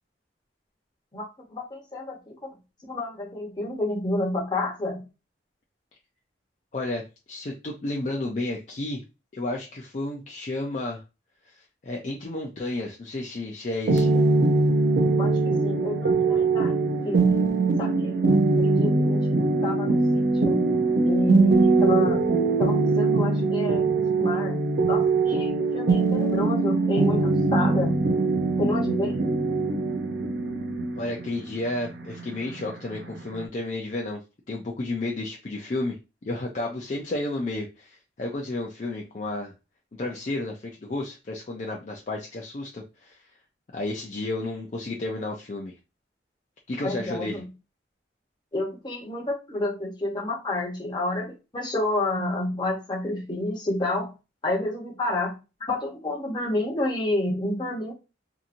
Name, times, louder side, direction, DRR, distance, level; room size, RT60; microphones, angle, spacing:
voice 1, 1.5-2.5 2.9-5.0 15.2-17.5 17.8-22.3 22.6-28.1 28.6-29.1 46.8-47.4 48.5-54.1 54.4-55.3 55.6-57.9, left 2 dB, 25° left, -1 dB, 0.9 m, -30 dB
voice 2, 6.7-7.0 7.3-9.0 9.3-11.0 11.4-14.2 30.9-34.2 34.5-36.0 36.2-39.5 39.9-43.3 43.7-45.8 46.7-47.4, left 2 dB, 40° left, 0 dB, 0.4 m, -32 dB
sound 1, 13.9-33.4, right 3 dB, 65° right, 0.5 m, -22 dB
2.8 x 2.6 x 2.5 m, 0.29 s
head